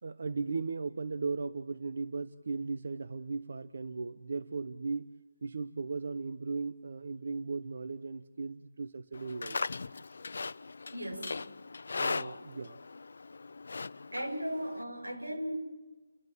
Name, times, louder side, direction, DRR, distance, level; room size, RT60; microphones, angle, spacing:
voice 1, 0.0-9.6 11.9-12.8, right 4 dB, 55° right, 11 dB, 0.9 m, -37 dB
Livestock farm animals working animals, 9.1-14.8, left 4 dB, 55° left, 0.6 m, -39 dB
voice 2, 10.9-11.5 14.1-15.5, equal, 90° right, 1 dB, 7.0 m, -37 dB
30.0 x 12.0 x 9.0 m, 1.2 s
figure-of-eight pair, 160°, 0 cm